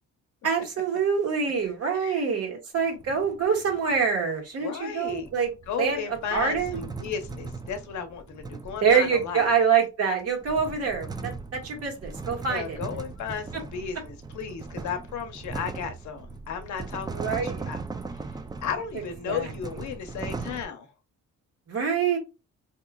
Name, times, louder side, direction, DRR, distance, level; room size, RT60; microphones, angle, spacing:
voice 1, 0.4-5.5 5.8-6.9 8.8-12.8 17.1-17.7 19.3-19.5 21.7-22.2, right 6 dB, 50° right, 1.5 m, -25 dB
voice 2, 1.9-2.2 4.6-5.3 5.7-9.5 12.5-17.8 18.6-20.9, left 7 dB, 70° left, 0.8 m, -34 dB
sound 1, 2.8-4.1 5.1-9.7 10.2-20.7, right 4 dB, 15° right, 0.3 m, -39 dB
3.6 x 2.9 x 2.2 m
cardioid pair, 90°, 30 cm